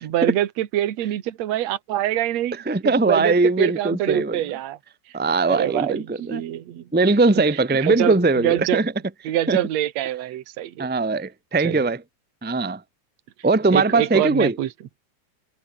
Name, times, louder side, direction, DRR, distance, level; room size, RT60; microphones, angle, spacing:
voice 1, 0.0-2.6 2.8-4.8 5.5-6.9 7.8-8.8 9.2-10.9 11.6-11.8 13.7-14.7, right 13 dB, 55° right, 2.4 m, -25 dB
voice 2, 2.6-4.4 5.1-6.4 6.9-8.9 9.5-9.6 10.8-12.0 12.4-12.8 13.4-14.5, right 3 dB, 10° right, 0.5 m, -20 dB
omnidirectional pair, 4.1 m